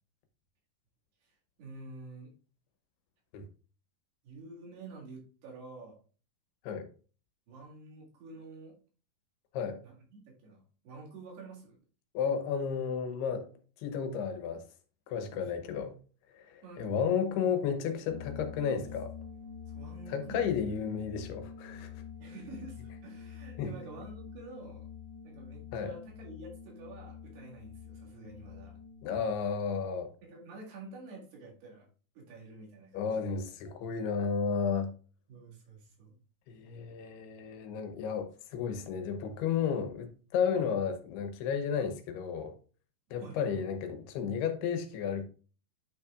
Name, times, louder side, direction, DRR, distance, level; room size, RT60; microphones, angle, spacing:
voice 1, 1.6-2.3 4.2-6.0 7.5-8.8 9.8-11.8 15.3-15.7 16.6-17.7 18.7-18.9 19.7-20.5 22.2-24.9 25.2-28.8 30.2-31.9 32.2-33.4 35.3-36.2 40.5-40.7 43.2-43.7, right 3 dB, 80° right, 4.1 m, -49 dB
voice 2, 12.1-13.5 13.8-14.7 15.1-16.0 16.3-19.1 20.1-21.9 23.6-23.7 25.7-25.9 29.0-30.1 32.9-34.9 36.5-42.6 43.1-45.3, left 6 dB, 85° left, 3.0 m, -33 dB
sound 1, 18.1-29.2, left 7 dB, 50° right, 5.6 m, -46 dB
9.8 x 5.8 x 2.4 m
omnidirectional pair, 4.6 m